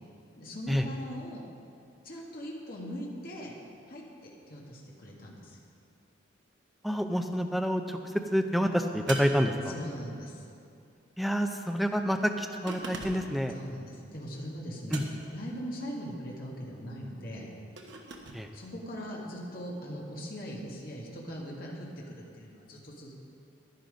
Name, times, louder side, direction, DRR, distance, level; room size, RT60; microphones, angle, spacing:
voice 1, 0.4-1.4 2.0-3.5 3.9-5.6 9.7-10.4 13.5-15.0 15.3-17.5 18.5-23.1, equal, 45° left, -3 dB, 1.8 m, -40 dB
voice 2, 6.8-8.0 8.3-9.7 11.2-13.5 14.9-15.0 18.3-18.5, equal, ahead, 4 dB, 0.5 m, -28 dB
sound 1, 9.1-10.2 12.7-13.4 14.9-15.5 17.8-18.4, right 2 dB, 65° right, 1.1 m, -40 dB
10.5 x 10.5 x 5.2 m, 2.5 s
head